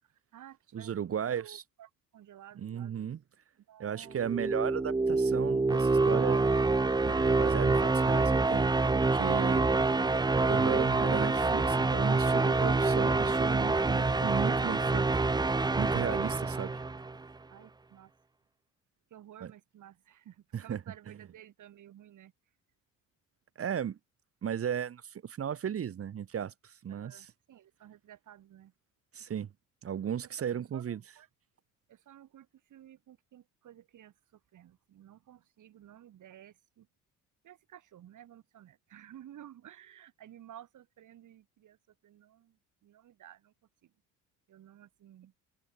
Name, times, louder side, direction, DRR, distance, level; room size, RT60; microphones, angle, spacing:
voice 1, 0.0-3.1 3.7-4.2 17.5-18.1 19.1-22.3 26.9-28.7 30.2-31.3 31.9-36.9 37.4-43.5 43.8-43.9 44.5-45.3, right 11 dB, 60° right, 7.5 m, -54 dB
voice 2, 0.7-1.6 2.6-3.2 3.8-6.6 7.0-9.7 10.5-15.0 15.8-16.7 19.4-19.5 20.5-20.8 23.6-24.0 24.4-27.3 29.1-29.5 29.8-31.0, right 8 dB, 40° right, 1.6 m, -35 dB
sound 1, 4.1-17.2, right 3 dB, 10° right, 0.8 m, -26 dB
open air
cardioid pair, 110°, 34 cm